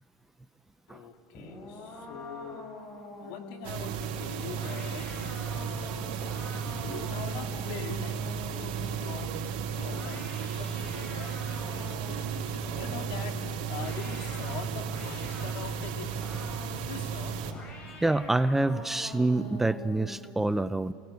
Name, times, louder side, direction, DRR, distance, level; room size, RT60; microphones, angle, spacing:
voice 1, 0.9-2.7 3.2-5.8 6.8-10.2 10.6-16.2 16.9-17.4, left 7 dB, 65° left, 5 dB, 2.4 m, -44 dB
sound 1, 1.3-9.2 9.7-12.3 12.6-15.6 16.2-16.8 17.4-20.3, left 2 dB, 35° left, 6.9 m, -45 dB
sound 2, 3.6-17.5, right 7 dB, 60° right, 3.5 m, -34 dB
voice 2, 18.0-20.9, right 2 dB, 5° right, 14 dB, 0.5 m, -26 dB
27.0 x 18.5 x 9.6 m, 2.6 s
supercardioid pair, 110°, 4 cm